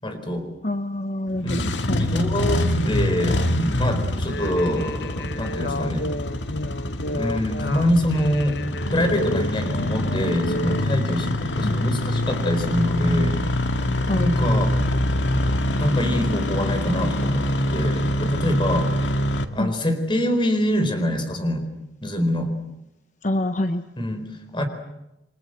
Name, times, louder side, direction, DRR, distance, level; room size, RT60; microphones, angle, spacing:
voice 1, 0.0-0.5 1.4-6.1 7.1-8.6 8.9-13.4 14.1-14.8 15.8-18.9 19.5-21.7 22.0-22.5 24.0-24.7, equal, 25° left, 7 dB, 4.3 m, -25 dB
voice 2, 0.6-2.1 11.6-11.8 14.1-14.3 19.6-19.7 23.2-23.8, left 1 dB, 45° left, 9 dB, 1.0 m, -26 dB
Engine starting, 1.3-19.4, left 1 dB, 90° left, 2.0 m, -25 dB
sound 1, 4.2-10.9, left 1 dB, 65° left, 1.3 m, -32 dB
29.0 x 24.5 x 7.7 m, 0.89 s
head